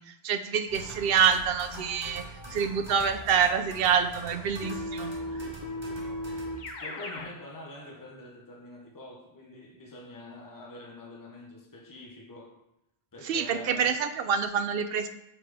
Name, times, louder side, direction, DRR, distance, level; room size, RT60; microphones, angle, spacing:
voice 1, 0.0-2.2 2.5-5.5 13.2-15.1, right 7 dB, 70° right, 0.8 m, -27 dB
sound 1, 0.7-6.7, equal, 25° right, 1.4 m, -43 dB
Keyboard (musical), 4.6-7.4, left 1 dB, 50° left, 0.8 m, -36 dB
voice 2, 6.8-12.7 13.1-14.0, left 1 dB, 20° left, 0.9 m, -46 dB
8.5 x 3.7 x 3.4 m
omnidirectional pair, 1.0 m